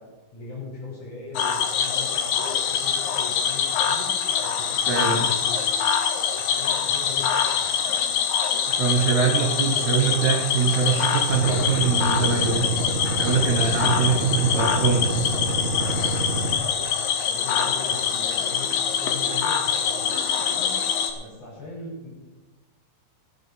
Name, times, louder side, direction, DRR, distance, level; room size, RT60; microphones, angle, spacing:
voice 1, 0.0-4.1 4.4-4.7 5.0-5.7 6.4-7.4 13.7-14.4 16.5-16.9 17.2-18.7 18.9-20.7 21.2-22.1, left 3 dB, 35° left, -3 dB, 5.6 m, -39 dB
Cricket / Frog, 1.3-21.1, left 7 dB, 75° left, 2.1 m, -24 dB
voice 2, 4.9-5.3 8.8-12.7 13.2-15.1, right 6 dB, 75° right, 1 dB, 1.8 m, -23 dB
sound 1, 11.3-16.5, right 1 dB, 50° right, 4.6 m, -27 dB
18.5 x 9.4 x 4.2 m, 1.2 s
omnidirectional pair, 5.7 m